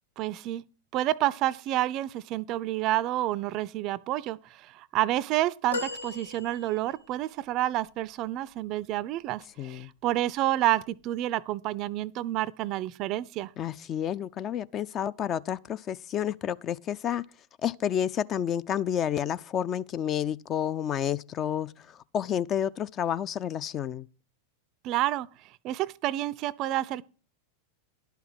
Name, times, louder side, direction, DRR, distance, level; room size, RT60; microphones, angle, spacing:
voice 1, 0.2-0.6 0.9-13.5 24.8-25.3 25.6-27.0, right 14 dB, 40° right, 0.4 m, -29 dB
sound 1, 5.7-7.1 7.9-8.0, left 3 dB, 75° left, 0.9 m, -37 dB
voice 2, 9.6-9.9 13.6-17.2 17.6-24.1, left 9 dB, 30° left, 0.4 m, -30 dB
11.0 x 5.7 x 6.1 m
figure-of-eight pair, 90°, 0 cm